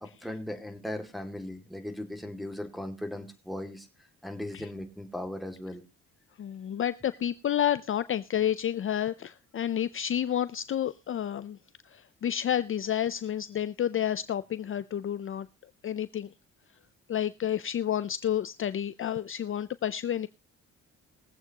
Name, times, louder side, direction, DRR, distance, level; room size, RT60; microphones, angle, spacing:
voice 1, 0.0-3.9 4.2-5.8, left 1 dB, ahead, 2.2 m, -38 dB
voice 2, 6.4-11.6 11.9-15.5 15.8-16.3 17.1-20.3, left 10 dB, 45° left, 0.5 m, -30 dB
21.5 x 7.9 x 2.9 m
cardioid pair, 90°, 30 cm